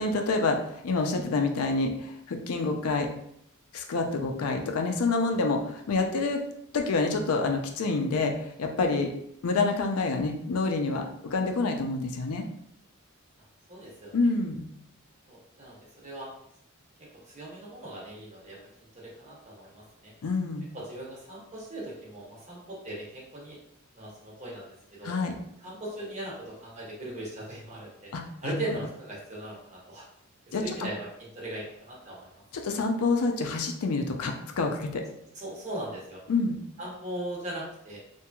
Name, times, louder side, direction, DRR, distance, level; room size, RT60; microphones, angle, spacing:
voice 1, 0.0-3.1 3.7-6.4 6.7-9.1 9.4-12.4 14.1-14.7 20.2-20.7 25.0-25.3 28.1-28.7 30.5-30.6 32.5-35.0 36.3-36.6, left 3 dB, 85° left, 4 dB, 0.4 m, -27 dB
voice 2, 13.7-14.1 15.3-16.3 17.0-18.6 18.9-20.1 20.7-23.6 23.9-25.1 25.6-28.1 28.4-30.1 30.5-32.3 32.7-32.8 35.3-36.2 36.8-38.0, right 1 dB, 35° right, -4 dB, 0.8 m, -39 dB
2.9 x 2.6 x 2.3 m, 0.72 s
head